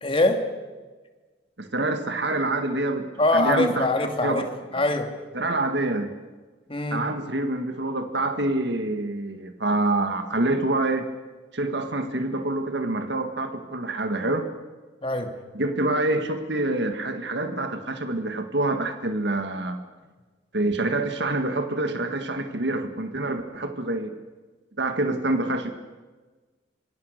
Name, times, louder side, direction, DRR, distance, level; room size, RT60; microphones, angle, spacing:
voice 1, 0.0-0.4 3.2-4.5 4.7-5.2 6.7-7.1 15.0-15.3, left 2 dB, 30° left, 5 dB, 2.6 m, -23 dB
voice 2, 1.6-3.1 3.3-3.9 4.2-4.5 4.7-4.8 5.3-6.1 6.9-11.1 11.5-14.5 15.5-19.8 20.5-24.1 24.8-25.7, right 2 dB, 70° right, 7 dB, 1.8 m, -26 dB
25.5 x 22.5 x 6.7 m, 1.3 s
head